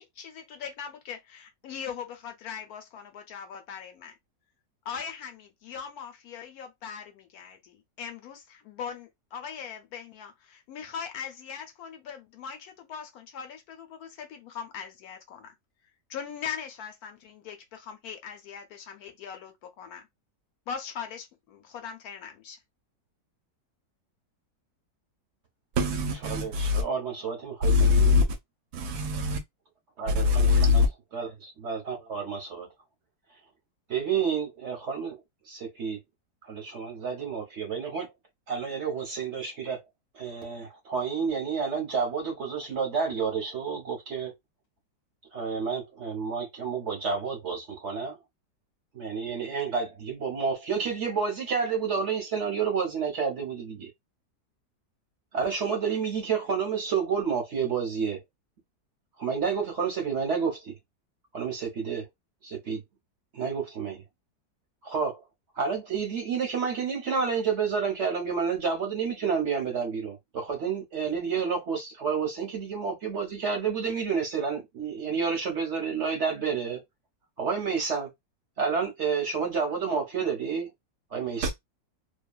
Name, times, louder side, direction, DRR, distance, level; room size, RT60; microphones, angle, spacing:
voice 1, 0.0-4.1 4.9-15.5 16.1-20.1 20.7-22.6, left 7 dB, 70° left, 1.0 m, -40 dB
voice 2, 25.8-26.8 27.6-28.3 28.7-29.4 30.1-30.9 81.4-81.5, left 4 dB, 75° right, 1.1 m, -22 dB
voice 3, 26.3-28.1 30.0-30.4 30.7-30.8 31.1-32.7 33.9-35.2 35.5-36.0 36.4-38.1 38.5-39.8 40.1-44.3 45.3-48.2 48.9-53.9 55.3-58.2 59.2-60.8 61.3-62.1 62.4-62.8 63.3-64.0 64.8-65.2 65.5-76.8 77.4-78.1 78.6-80.7 81.1-81.5, right 6 dB, 55° right, 0.9 m, -30 dB
2.7 x 2.3 x 2.3 m
omnidirectional pair, 1.8 m